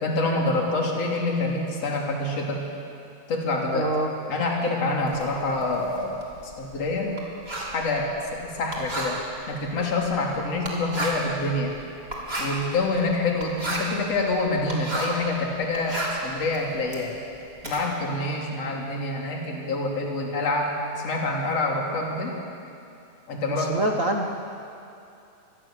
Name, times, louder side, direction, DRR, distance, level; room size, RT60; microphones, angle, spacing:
voice 1, 0.0-2.6 3.3-3.9 4.3-7.1 7.7-9.2 9.5-11.7 12.4-17.1 17.6-20.7 21.0-22.4 23.3-23.8, left 2 dB, 50° left, -1 dB, 4.1 m, -26 dB
voice 2, 3.7-4.1 23.7-24.3, right 1 dB, 70° right, 2 dB, 0.7 m, -24 dB
Writing, 5.1-15.3 15.6-17.8, right 1 dB, 20° right, 3.5 m, -34 dB
25.5 x 21.0 x 7.6 m, 2.6 s
omnidirectional pair, 3.6 m